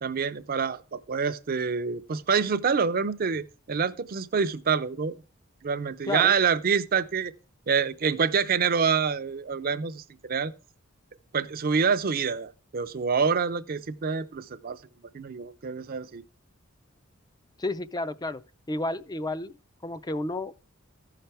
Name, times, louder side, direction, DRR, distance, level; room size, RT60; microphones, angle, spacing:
voice 1, 0.0-5.2 5.6-7.3 7.7-10.5 11.3-14.8 15.1-16.2, right 6 dB, 45° right, 0.5 m, -26 dB
voice 2, 17.6-18.4 18.7-19.5 19.8-20.5, left 2 dB, 20° left, 0.4 m, -31 dB
14.5 x 5.7 x 3.4 m
head